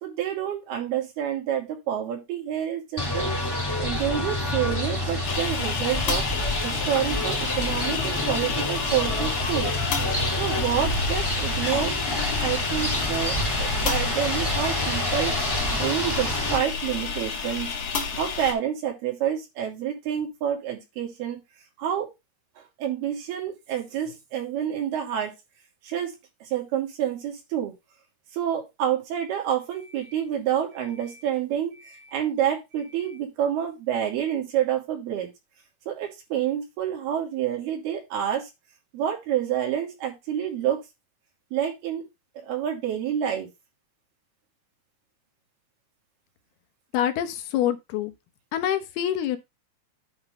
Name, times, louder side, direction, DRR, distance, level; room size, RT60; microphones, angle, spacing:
voice 1, 0.0-3.3 3.8-6.3 6.6-9.7 10.4-12.0 12.4-17.8 18.2-21.4 21.8-22.1 22.6-25.3 25.8-26.1 26.4-27.7 28.3-35.3 35.9-38.5 38.9-40.8 41.5-42.1 42.4-43.5, right 10 dB, 85° right, 4.4 m, -28 dB
sound 1, 3.0-16.6, left 1 dB, 10° left, 1.7 m, -28 dB
sound 2, 5.2-18.5, left 5 dB, 55° left, 3.0 m, -30 dB
voice 2, 46.9-48.1 48.5-49.4, left 10 dB, 85° left, 3.0 m, -26 dB
8.7 x 3.8 x 5.4 m
omnidirectional pair, 4.4 m